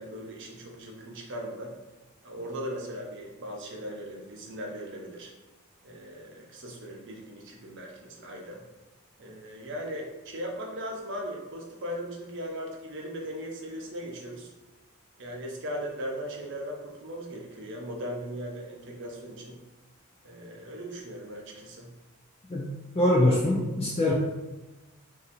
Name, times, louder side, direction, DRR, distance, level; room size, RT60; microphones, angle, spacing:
voice 1, 0.0-1.7 2.2-5.3 5.8-8.6 9.2-14.5 15.2-19.6 20.2-21.9, equal, 55° right, 0 dB, 0.7 m, -38 dB
voice 2, 22.5-24.1, left 1 dB, 25° left, -4 dB, 0.4 m, -24 dB
2.7 x 2.5 x 4.2 m, 1.1 s
head